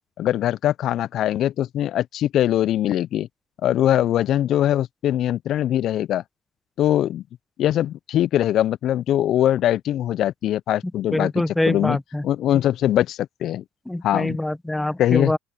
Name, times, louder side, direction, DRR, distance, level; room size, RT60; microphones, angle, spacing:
voice 1, 0.2-3.3 3.6-6.2 6.8-7.2 7.6-11.3 11.7-12.0 12.2-13.6 14.0-14.4 15.0-15.3, left 12 dB, 55° left, 0.5 m, -21 dB
voice 2, 11.1-12.2 13.9-15.4, left 1 dB, 10° left, 0.8 m, -24 dB
open air
hypercardioid pair, 70°, 0 cm